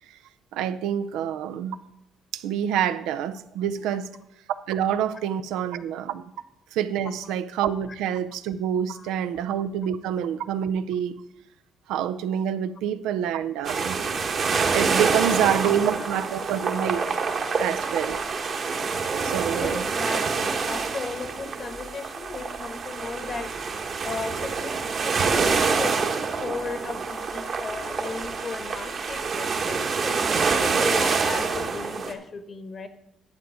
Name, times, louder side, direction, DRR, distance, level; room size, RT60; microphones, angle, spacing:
voice 1, 0.5-1.8 2.3-4.2 4.7-6.2 6.7-11.2 11.9-14.0 14.4-17.2 17.6-18.2 19.2-19.8, right 9 dB, 90° right, 12 dB, 0.5 m, -27 dB
sound 1, 13.6-32.1, right 5 dB, 50° right, 1.3 m, -26 dB
voice 2, 19.5-23.5 24.0-26.0 26.4-32.9, left 4 dB, 45° left, 10 dB, 1.2 m, -36 dB
10.5 x 7.9 x 5.1 m, 0.81 s
cardioid pair, 80°, 0 cm